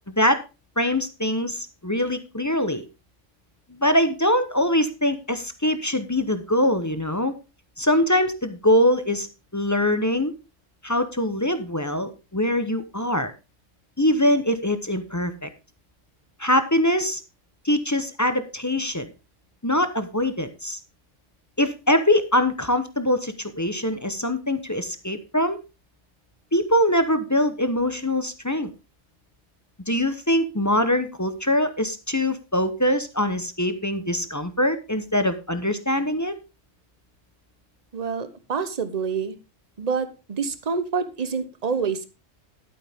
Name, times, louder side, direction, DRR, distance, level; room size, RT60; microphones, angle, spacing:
voice 1, 0.1-0.4 0.8-2.8 3.7-7.3 7.8-9.3 9.5-10.3 10.8-13.3 14.0-15.5 16.4-17.2 17.6-19.1 19.6-20.8 21.6-25.6 26.5-28.7 29.9-36.4, left 1 dB, 15° left, 9 dB, 0.8 m, -23 dB
voice 2, 37.9-39.4 39.8-42.1, right 5 dB, 35° right, 12 dB, 1.0 m, -27 dB
11.0 x 9.1 x 3.5 m, 0.28 s
omnidirectional pair, 1.3 m